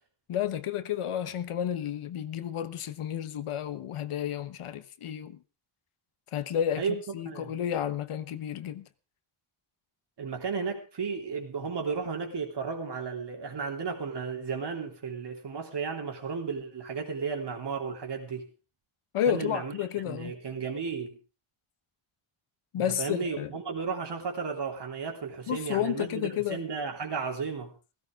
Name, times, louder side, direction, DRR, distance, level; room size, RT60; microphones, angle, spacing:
voice 1, 0.3-5.4 6.3-6.9 7.1-8.9 19.1-20.3 22.7-23.5 25.5-26.6, left 10 dB, 80° left, 1.2 m, -31 dB
voice 2, 6.8-7.5 10.2-18.5 19.3-19.8 20.0-21.2 23.0-27.7, right 5 dB, 55° right, 3.5 m, -34 dB
16.5 x 15.5 x 3.7 m
wide cardioid pair, 145°, 50 cm